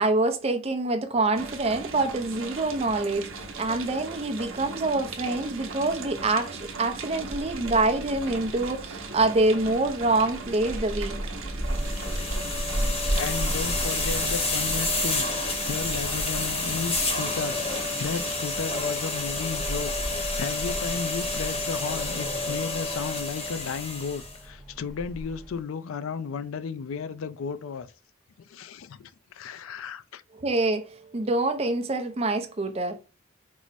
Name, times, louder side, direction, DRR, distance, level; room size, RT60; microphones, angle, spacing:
voice 1, 0.0-11.2 30.3-33.0, right 2 dB, 30° right, 0.5 m, -26 dB
sound 1, 1.3-18.3, right 3 dB, 70° right, 0.7 m, -39 dB
Wind, 7.0-25.6, right 1 dB, ahead, 0.9 m, -36 dB
sound 2, 11.7-24.4, left 2 dB, 30° left, 0.9 m, -30 dB
voice 2, 12.9-27.9 28.5-30.2, left 6 dB, 70° left, 0.4 m, -34 dB
4.6 x 2.1 x 4.0 m
head